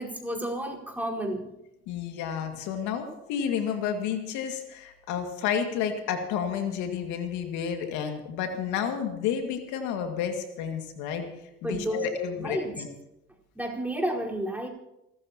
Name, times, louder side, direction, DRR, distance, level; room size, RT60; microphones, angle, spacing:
voice 1, 0.0-1.5 11.6-12.0 12.4-12.7 13.5-14.7, right 1 dB, 5° right, -2 dB, 4.7 m, -31 dB
voice 2, 1.9-11.3 11.6-12.9, left 8 dB, 75° left, 5 dB, 2.3 m, -31 dB
29.0 x 13.5 x 3.0 m, 0.91 s
hypercardioid pair, 60°, 30 cm